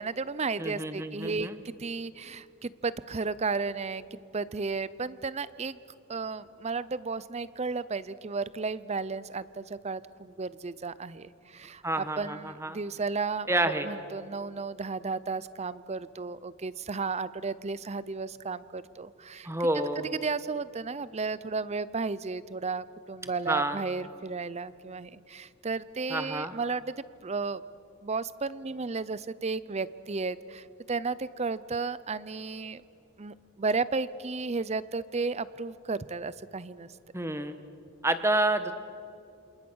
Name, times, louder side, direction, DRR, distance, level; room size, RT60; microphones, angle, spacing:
voice 1, 0.0-5.8 6.1-19.5 20.1-27.6 28.0-32.8 33.2-36.9, right 4 dB, 30° right, 17 dB, 0.6 m, -33 dB
voice 2, 0.6-1.6 11.8-12.8 13.5-13.9 19.4-20.0 23.5-23.8 26.1-26.5 37.1-37.5 38.0-38.7, right 1 dB, 15° right, 9 dB, 1.3 m, -28 dB
28.0 x 27.5 x 6.3 m, 2.6 s
head